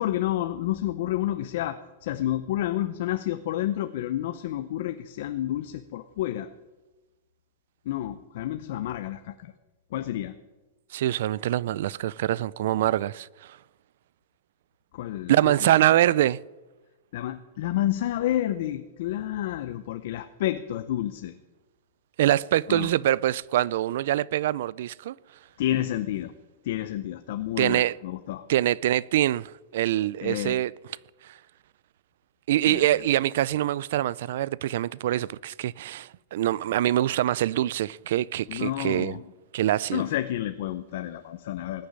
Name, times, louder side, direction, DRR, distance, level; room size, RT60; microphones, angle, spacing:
voice 1, 0.0-6.5 7.9-9.5 9.9-10.3 14.9-15.7 17.1-21.4 22.7-22.9 25.6-26.3 26.6-28.5 30.2-30.6 32.7-33.0 38.5-39.3 39.9-41.9, left 13 dB, 55° left, 0.7 m, -30 dB
voice 2, 10.9-13.3 15.3-16.4 22.2-25.1 27.6-27.9 28.5-30.7 32.5-39.1 39.5-40.0, right 13 dB, 60° right, 0.4 m, -24 dB
19.5 x 6.9 x 9.5 m
supercardioid pair, 170°, 0 cm